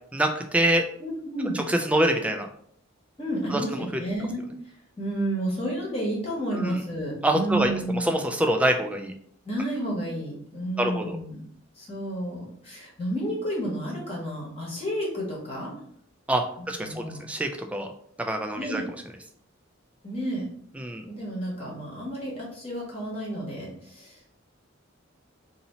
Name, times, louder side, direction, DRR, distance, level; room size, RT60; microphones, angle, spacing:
voice 1, 0.1-0.8 1.5-2.5 3.5-3.6 6.5-6.8 7.2-7.7 8.0-9.1 10.8-11.2 16.3-17.9 18.2-18.8 20.8-21.0, right 1 dB, 5° right, 4 dB, 0.3 m, -25 dB
voice 2, 1.0-1.6 3.2-4.4 5.0-8.1 9.4-11.4 11.7-15.7 16.6-17.3 18.5-18.8 20.0-20.4 21.1-24.2, right 1 dB, 30° left, -4 dB, 1.1 m, -31 dB
2.7 x 2.7 x 4.1 m, 0.63 s
head